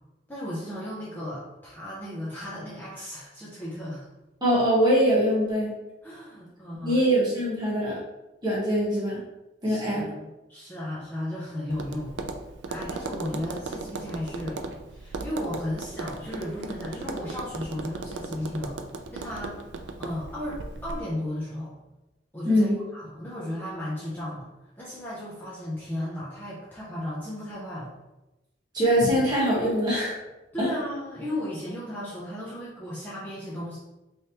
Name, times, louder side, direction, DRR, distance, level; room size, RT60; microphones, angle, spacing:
voice 1, 0.3-4.1 6.0-7.0 9.6-12.2 12.7-14.6 14.9-18.8 19.1-21.8 22.3-24.5 24.8-27.9 30.5-33.8, left 1 dB, 10° left, -8 dB, 0.7 m, -35 dB
voice 2, 4.4-5.7 6.8-7.9 8.4-9.2 9.6-10.0 22.4-22.8 28.7-30.2 30.6-30.7, equal, 25° right, -7 dB, 1.4 m, -23 dB
Tap, 11.7-21.0, right 3 dB, 85° right, 0.4 m, -37 dB
3.2 x 3.1 x 2.9 m, 0.99 s
head